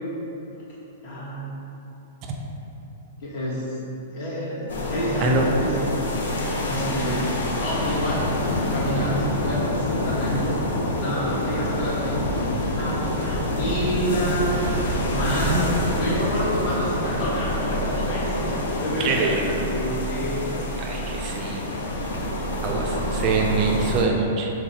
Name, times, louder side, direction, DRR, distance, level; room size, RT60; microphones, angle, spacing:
voice 1, 1.0-1.5 3.2-3.8 4.1-5.9 6.6-7.3 7.6-8.3 8.7-10.6 11.0-14.6 15.1-20.8 22.6-23.0, equal, 50° left, -7 dB, 1.2 m, -29 dB
sound 1, 4.7-24.0, left 1 dB, 90° left, 0.6 m, -26 dB
voice 2, 15.3-15.7 19.0-19.6 20.8-21.6 22.6-24.5, right 4 dB, 35° right, 1 dB, 0.3 m, -24 dB
4.0 x 2.2 x 4.0 m, 3.0 s
hypercardioid pair, 145°, 0 cm